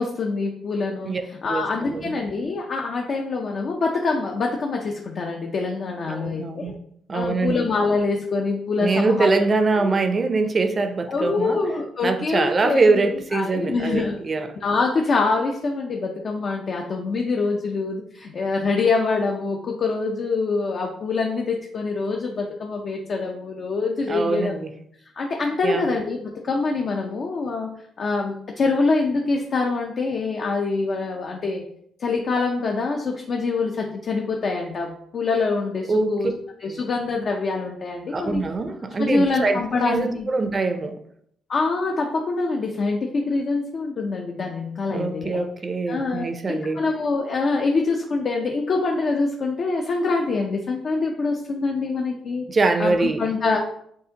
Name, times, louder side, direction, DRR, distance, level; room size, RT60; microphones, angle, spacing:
voice 1, 0.0-6.7 7.1-9.4 9.8-9.9 11.1-14.2 14.6-24.6 25.2-27.7 28.0-31.6 32.0-36.3 36.6-38.4 39.0-40.3 41.5-45.4 45.9-52.4 52.8-53.6, left 3 dB, 55° left, 1 dB, 0.6 m, -25 dB
voice 2, 1.5-2.1 6.1-6.7 7.1-7.7 8.8-11.6 12.0-14.6 24.1-24.7 25.6-25.9 35.9-36.3 36.7-36.8 38.1-41.0 44.9-46.8 52.5-53.2, right 3 dB, 35° right, 7 dB, 0.5 m, -23 dB
6.5 x 2.5 x 2.8 m, 0.69 s
cardioid pair, 90°, 0 cm